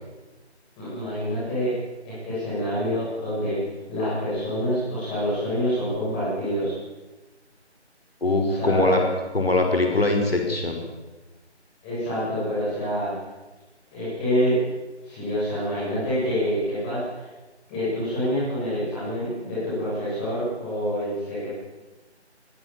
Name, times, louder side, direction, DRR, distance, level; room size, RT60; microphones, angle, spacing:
voice 1, 0.8-1.8 2.0-3.6 3.9-6.7 8.5-9.0 11.8-13.1 13.9-14.5 15.0-17.2 17.7-21.5, equal, 10° left, -10 dB, 7.5 m, -27 dB
voice 2, 8.2-9.0 9.3-10.8, left 2 dB, 60° left, 3 dB, 5.6 m, -22 dB
24.5 x 21.0 x 7.5 m, 1.2 s
figure-of-eight pair, 160°, 34 cm